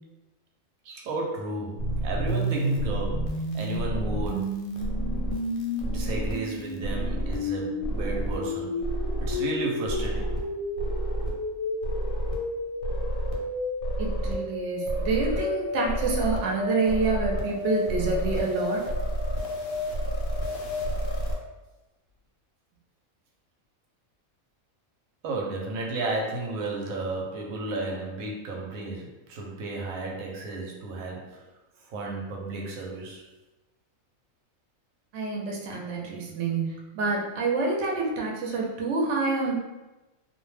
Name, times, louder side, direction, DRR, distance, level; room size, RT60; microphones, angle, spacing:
voice 1, 0.8-4.5 5.8-8.7 9.2-10.4 25.2-31.4 31.8-33.2, right 2 dB, 85° right, -1 dB, 1.0 m, -33 dB
sound 1, 1.8-21.3, equal, 85° left, 1.0 m, -29 dB
voice 2, 14.0-18.8 35.1-39.5, right 3 dB, 65° right, -1 dB, 0.8 m, -27 dB
2.5 x 2.1 x 3.1 m, 1.1 s
omnidirectional pair, 1.4 m